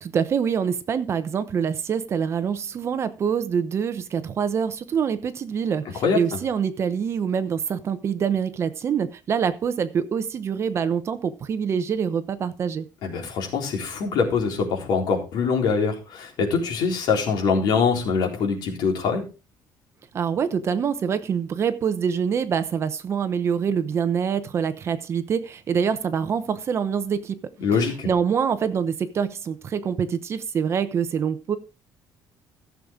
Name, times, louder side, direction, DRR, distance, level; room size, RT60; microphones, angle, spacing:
voice 1, 0.0-12.8 20.1-27.4 28.1-31.6, right 7 dB, 35° right, 0.8 m, -25 dB
voice 2, 13.0-19.2 27.6-28.1, left 5 dB, 65° left, 3.9 m, -23 dB
15.0 x 7.2 x 3.7 m
cardioid pair, 170°, 8 cm